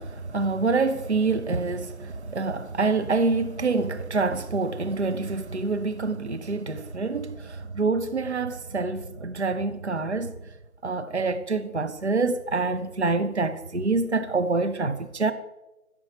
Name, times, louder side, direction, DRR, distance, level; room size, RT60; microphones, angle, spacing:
voice 1, 0.0-10.3 10.8-15.3, right 3 dB, 50° right, 0.7 m, -26 dB
14.5 x 7.0 x 5.1 m
figure-of-eight pair, 165°, 45 cm